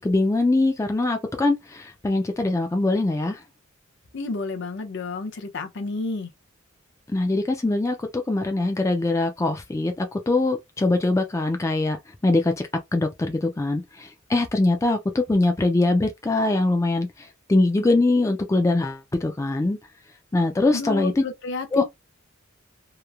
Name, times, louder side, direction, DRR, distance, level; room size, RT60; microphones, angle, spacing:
voice 1, 0.0-3.4 7.1-12.0 12.2-12.5 12.9-17.1 17.5-19.8 20.3-21.2 21.7-21.8, left 2 dB, 15° left, 0.4 m, -22 dB
voice 2, 4.1-6.3 20.7-21.8, left 3 dB, 60° left, 0.6 m, -31 dB
2.9 x 2.0 x 2.3 m
head